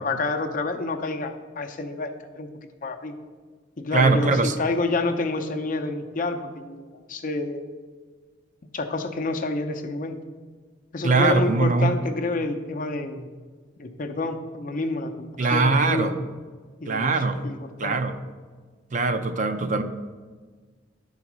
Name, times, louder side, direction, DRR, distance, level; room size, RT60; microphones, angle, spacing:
voice 1, 0.0-2.5 2.8-3.1 3.8-6.8 7.1-7.8 8.7-10.2 10.9-13.3 13.8-16.1 16.8-17.1 17.4-17.6 17.8-18.0, left 3 dB, 45° left, 6 dB, 0.6 m, -28 dB
voice 2, 3.9-4.5 11.0-11.9 15.4-16.1 16.9-17.4 17.8-18.2 18.9-19.8, right 3 dB, 40° right, 9 dB, 0.5 m, -21 dB
10.0 x 4.0 x 6.1 m, 1.5 s
head